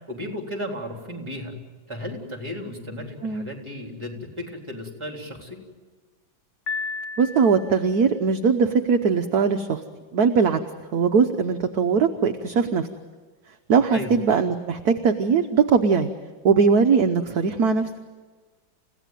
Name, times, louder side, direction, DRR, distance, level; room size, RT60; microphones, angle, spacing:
voice 1, 0.1-1.5 1.9-5.6 13.9-14.1, left 1 dB, 15° right, 2 dB, 3.8 m, -34 dB
Piano, 6.7-8.0, left 4 dB, 45° left, 1.2 m, -33 dB
voice 2, 7.2-9.8 10.1-10.6 10.9-12.9 13.7-16.1 16.4-17.9, right 5 dB, 60° right, 6 dB, 1.3 m, -20 dB
29.5 x 16.5 x 9.2 m, 1.4 s
omnidirectional pair, 2.1 m